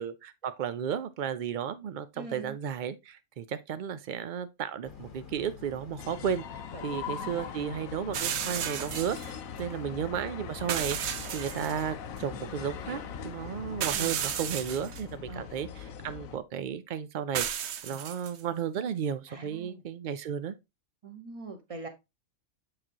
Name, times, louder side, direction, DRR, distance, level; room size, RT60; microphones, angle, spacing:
voice 1, 0.0-11.0 11.3-20.5, right 8 dB, 85° right, 0.4 m, -34 dB
voice 2, 2.1-2.6 6.7-7.4 13.9-14.2 15.3-15.5 17.9-18.0 19.3-19.8 21.0-21.9, right 3 dB, 25° right, 1.2 m, -43 dB
Boat Water vehicle, 4.8-13.9, left 4 dB, 40° left, 1.0 m, -48 dB
sound 1, 6.0-16.4, left 8 dB, 85° left, 1.1 m, -41 dB
sound 2, 8.1-9.3 10.7-11.8 12.2-12.3 13.8-15.0 17.3-18.4, right 9 dB, 60° right, 0.8 m, -33 dB
7.6 x 4.8 x 2.8 m
omnidirectional pair, 1.4 m